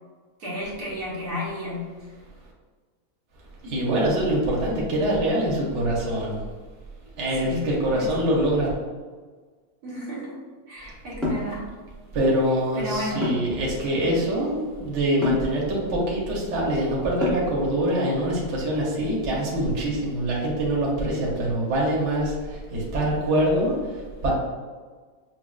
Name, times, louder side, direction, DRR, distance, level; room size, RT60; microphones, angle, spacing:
voice 1, 0.4-1.9 7.4-8.2 9.8-10.4 10.7-11.7 12.7-13.3, left 1 dB, 90° right, -5 dB, 1.5 m, -32 dB
voice 2, 3.6-6.4 7.2-8.8 10.8-10.9 12.1-24.3, right 1 dB, 55° right, -3 dB, 1.1 m, -24 dB
sound 1, 11.2-11.5 13.2-13.6 15.2-15.5 17.2-17.6, left 2 dB, ahead, 0.8 m, -25 dB
5.8 x 2.3 x 2.3 m, 1.5 s
omnidirectional pair, 1.6 m